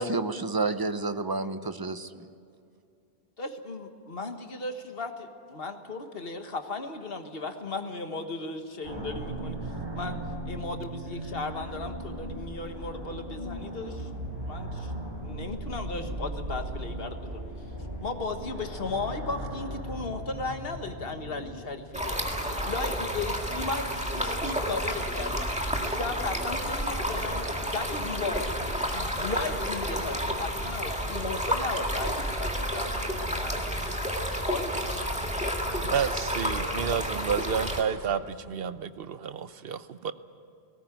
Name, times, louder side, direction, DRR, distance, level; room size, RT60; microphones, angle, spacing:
voice 1, 0.0-2.3, right 3 dB, 25° right, 10 dB, 0.7 m, -30 dB
voice 2, 3.4-9.6 9.9-10.2 10.5-14.1 14.5-14.9 15.2-17.4 18.0-22.2 22.6-25.5 25.9-27.4 27.7-28.5 28.9-33.6 34.4-34.8 35.4-35.9, left 3 dB, 65° left, 6 dB, 1.6 m, -36 dB
sound 1, 8.8-21.9, right 1 dB, 50° right, 4.2 m, -38 dB
sound 2, 8.9-28.7, left 1 dB, 45° left, 4.2 m, -48 dB
Stream, 21.9-37.8, equal, 5° right, 2.0 m, -30 dB
voice 3, 35.8-40.1, right 7 dB, 70° right, 13 dB, 0.9 m, -30 dB
19.0 x 18.0 x 9.1 m, 2.4 s
omnidirectional pair, 1.0 m